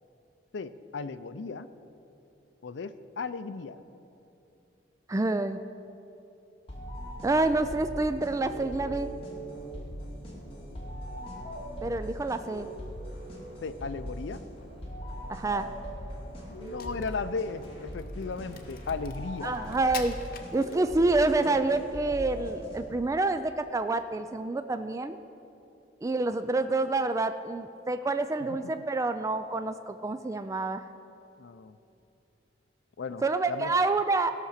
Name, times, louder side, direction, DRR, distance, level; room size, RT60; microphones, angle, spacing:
voice 1, 0.5-1.7 2.6-3.8 13.6-14.4 16.5-19.6 28.5-28.6 31.4-31.8 33.0-33.7, left 4 dB, 80° left, 12 dB, 0.5 m, -36 dB
voice 2, 5.1-5.6 7.2-9.1 11.8-12.7 15.3-15.7 19.4-20.2 20.5-25.2 26.0-30.8 33.2-34.3, right 3 dB, 20° right, 10 dB, 0.3 m, -27 dB
sound 1, 6.7-23.2, equal, 30° left, 2.4 m, -40 dB
Crack, 16.7-21.2, left 6 dB, 55° left, 0.8 m, -46 dB
15.5 x 5.9 x 6.6 m, 2.8 s
head